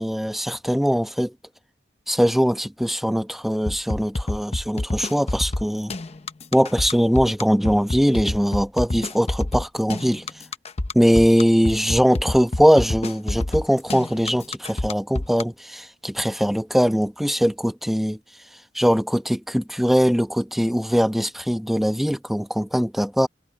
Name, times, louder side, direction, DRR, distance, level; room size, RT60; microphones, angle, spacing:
voice 1, 0.0-1.3 2.1-5.9 6.5-10.2 10.9-18.2 18.7-23.3, equal, ahead, 1.3 m, -21 dB
sound 1, 3.7-15.4, left 2 dB, 35° left, 0.8 m, -27 dB
head